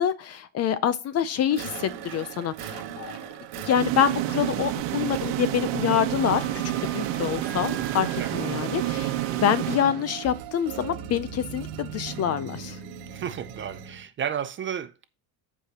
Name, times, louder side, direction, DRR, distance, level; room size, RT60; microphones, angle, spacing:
voice 1, 0.0-3.2 3.6-6.5 6.8-9.1 9.4-12.8, left 9 dB, 35° left, 0.5 m, -26 dB
sound 1, 1.5-14.0, right 8 dB, 90° right, 2.0 m, -39 dB
sound 2, 3.8-10.5, right 14 dB, 70° right, 1.2 m, -29 dB
Wind instrument woodwind instrument, 6.2-9.9, right 1 dB, 5° left, 0.9 m, -43 dB
voice 2, 13.1-15.0, right 8 dB, 25° right, 0.5 m, -32 dB
14.0 x 5.0 x 2.8 m
cardioid pair, 145°, 48 cm